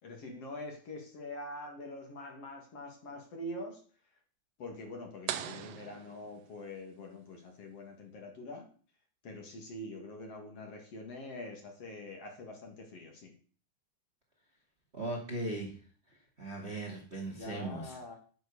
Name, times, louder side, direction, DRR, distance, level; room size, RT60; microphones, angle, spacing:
voice 1, 0.0-3.8 4.6-8.7 9.2-13.3 17.3-18.1, left 1 dB, 50° left, 2 dB, 3.0 m, -44 dB
sound 1, 5.3-6.9, right 10 dB, 75° right, 1.5 m, -41 dB
voice 2, 14.9-15.7 16.4-17.9, right 2 dB, 25° right, -1 dB, 1.9 m, -38 dB
9.5 x 6.3 x 6.8 m, 0.42 s
omnidirectional pair, 3.7 m